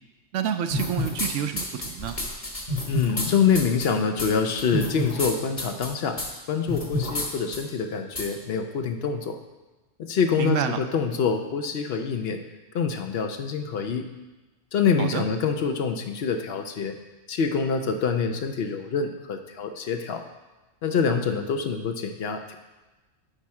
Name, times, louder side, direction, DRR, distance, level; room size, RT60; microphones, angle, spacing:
voice 1, 0.3-2.2 10.4-10.8 15.0-15.2, right 9 dB, 80° right, 9 dB, 0.9 m, -28 dB
sound 1, 0.7-1.3 1.6-3.3 3.5-3.8 4.2-4.3 4.6-5.3 5.6-5.9 6.2-6.3 6.7-7.3 7.5-7.6 8.2-8.3, left 2 dB, 30° left, 1.3 m, -28 dB
voice 2, 2.9-6.2 6.5-9.4 10.0-12.4 12.7-14.1 14.7-17.0 17.3-20.2 20.8-22.6, left 6 dB, 60° left, 6 dB, 0.8 m, -26 dB
10.5 x 4.3 x 4.7 m, 1.1 s
omnidirectional pair, 1.2 m